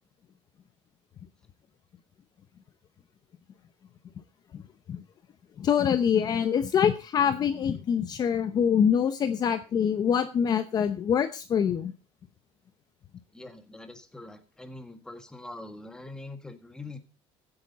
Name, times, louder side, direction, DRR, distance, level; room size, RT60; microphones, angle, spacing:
voice 1, 5.6-11.9, left 8 dB, 35° left, 10 dB, 0.8 m, -25 dB
voice 2, 13.3-17.0, left 2 dB, 5° left, 7 dB, 1.6 m, -43 dB
15.5 x 8.8 x 4.0 m, 0.33 s
cardioid pair, 155°, 12 cm